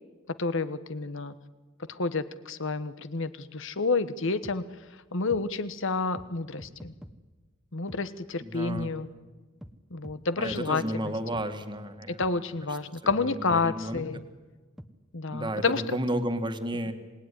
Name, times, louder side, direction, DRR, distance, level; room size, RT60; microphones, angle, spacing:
voice 1, 0.4-1.3 1.9-4.6 5.1-6.9 7.7-9.1 9.9-11.1 12.1-14.2 15.1-16.0, left 4 dB, 65° left, 13 dB, 1.2 m, -29 dB
sound 1, 4.4-4.6 5.3-5.4 6.1-6.3 6.6-7.1 7.9-8.0 8.7-8.9 9.6-9.7 10.0-10.2 10.5-10.6 11.3-11.5 12.2-12.3 13.1-13.2 13.5-13.6 13.9-14.1 14.8-14.9, equal, ahead, 1.1 m, -44 dB
voice 2, 8.4-8.9 10.4-12.2 13.2-14.0 15.3-16.9, right 1 dB, 25° right, 8 dB, 1.9 m, -32 dB
26.5 x 19.5 x 10.0 m, 1.3 s
head